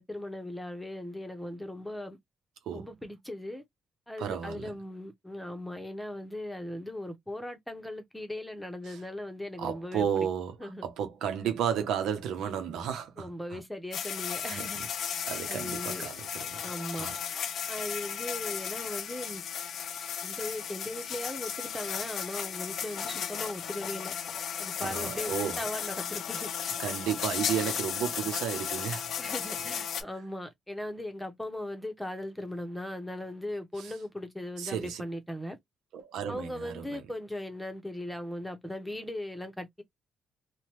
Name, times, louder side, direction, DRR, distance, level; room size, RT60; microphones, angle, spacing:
voice 1, 0.0-2.2 2.7-3.6 4.1-10.1 10.6-10.9 13.2-14.8 15.5-16.1 16.6-17.1 17.7-19.4 20.2-24.1 24.6-26.5 29.2-35.6 36.3-39.8, left 1 dB, 5° left, 0.9 m, -38 dB
voice 2, 4.2-4.7 8.9-9.0 9.6-13.6 14.5-14.8 15.2-16.6 16.9-17.1 24.8-25.6 26.8-29.1 33.8-33.9 34.6-35.0 35.9-37.0, right 8 dB, 90° right, 0.7 m, -33 dB
sound 1, 13.9-30.0, left 8 dB, 70° left, 0.5 m, -35 dB
2.8 x 2.2 x 3.2 m
cardioid pair, 85°, 0 cm